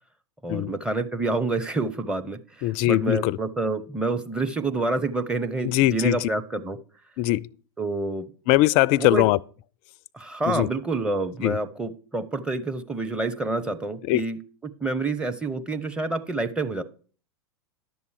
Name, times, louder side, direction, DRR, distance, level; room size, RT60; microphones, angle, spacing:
voice 1, 0.4-6.8 7.8-8.3 9.0-9.2 10.1-16.8, right 3 dB, 5° right, 0.7 m, -28 dB
voice 2, 2.6-3.4 5.6-6.3 7.2-7.5 8.5-9.4 10.4-10.7 11.4-11.6 14.1-14.2, left 16 dB, 40° left, 0.4 m, -21 dB
11.0 x 7.0 x 4.8 m
figure-of-eight pair, 95°, 14 cm